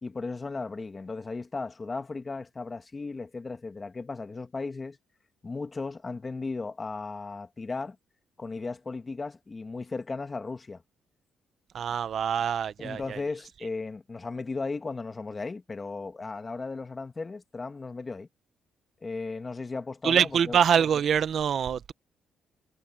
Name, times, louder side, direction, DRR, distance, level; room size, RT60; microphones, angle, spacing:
voice 1, 0.0-5.0 5.4-8.0 8.4-10.8 12.8-18.3 19.0-20.6, left 3 dB, 30° left, 2.2 m, -36 dB
voice 2, 11.7-13.2 20.0-21.9, right 8 dB, 60° right, 0.7 m, -25 dB
cardioid pair, 90°, 0 cm